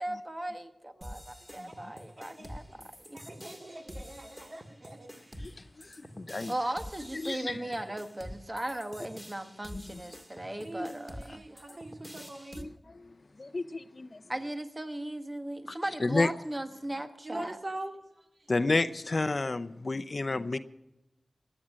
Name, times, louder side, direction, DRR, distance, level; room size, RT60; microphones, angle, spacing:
voice 1, 0.0-3.2 6.5-11.4 14.3-17.6, right 1 dB, 25° right, 1.3 m, -37 dB
sound 1, 1.0-12.6, equal, 10° right, 2.0 m, -47 dB
voice 2, 1.6-1.9 2.4-2.6 5.4-6.5 7.1-7.7 9.7-10.0 10.8-10.9 11.3-11.4 11.7-11.8 12.5-14.2 15.7-16.3 18.5-20.6, left 3 dB, 55° left, 0.7 m, -32 dB
voice 3, 3.1-5.3 10.6-12.7 17.2-18.0 20.5-20.6, right 2 dB, 50° right, 2.2 m, -43 dB
16.5 x 10.0 x 6.4 m
cardioid pair, 50°, 0 cm